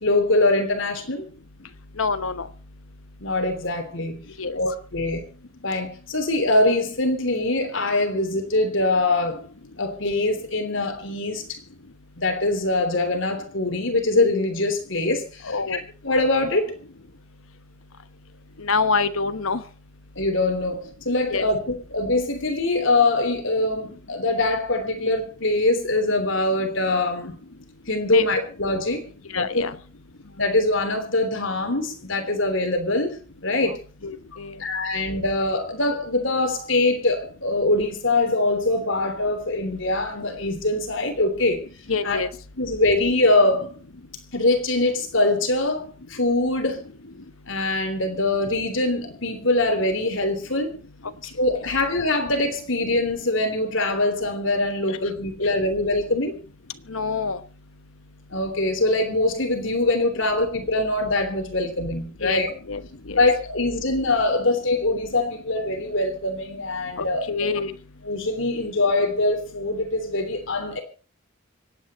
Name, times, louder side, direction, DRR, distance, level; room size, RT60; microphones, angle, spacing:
voice 1, 0.0-1.3 3.2-4.2 4.5-5.2 5.6-9.5 9.8-11.6 12.2-15.8 16.0-16.7 20.1-27.4 27.9-29.0 29.3-29.6 30.4-33.1 33.4-33.8 34.6-41.6 42.0-42.2 42.6-43.7 44.3-45.8 46.1-46.8 47.5-50.7 51.4-56.3 58.3-62.5 63.1-67.5 68.0-70.8, left 2 dB, 65° left, 5 dB, 3.3 m, -23 dB
voice 2, 2.0-2.5 4.4-4.6 15.4-15.8 18.6-19.6 21.3-21.5 28.1-28.2 29.3-29.7 33.7-33.8 34.0-34.6 41.9-42.3 54.9-55.0 56.9-57.4 62.2-62.4 62.7-63.2 67.0-67.7, left 4 dB, 80° left, 11 dB, 1.1 m, -26 dB
25.5 x 9.2 x 4.3 m, 0.38 s
head